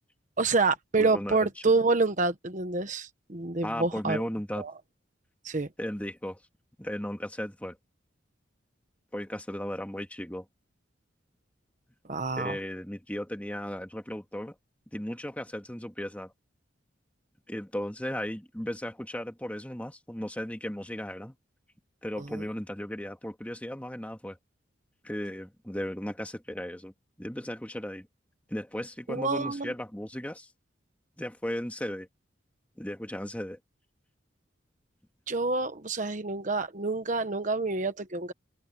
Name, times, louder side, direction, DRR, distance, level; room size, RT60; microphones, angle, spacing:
voice 1, 0.4-4.2 4.6-4.7 5.4-5.7 12.1-12.6 22.2-22.4 29.1-29.7 35.3-38.3, right 3 dB, 40° right, 1.1 m, -28 dB
voice 2, 1.0-1.4 3.6-4.6 5.8-6.4 6.8-7.8 9.1-10.5 12.4-14.5 14.9-16.3 17.5-21.4 22.0-24.4 25.0-26.9 27.2-28.1 28.5-30.5 31.2-32.1 32.8-33.6, equal, 10° left, 2.0 m, -36 dB
open air
head